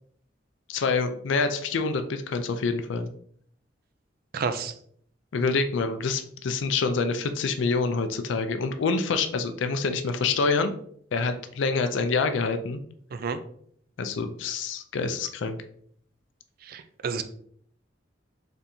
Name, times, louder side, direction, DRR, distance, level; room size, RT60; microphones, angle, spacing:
voice 1, 0.7-3.1 5.3-10.7 11.1-12.8 14.0-15.6, left 4 dB, 70° left, 8 dB, 0.4 m, -26 dB
voice 2, 4.3-4.7 13.1-13.4 16.6-17.2, right 5 dB, 50° right, 10 dB, 0.3 m, -30 dB
4.2 x 3.4 x 2.6 m, 0.63 s
head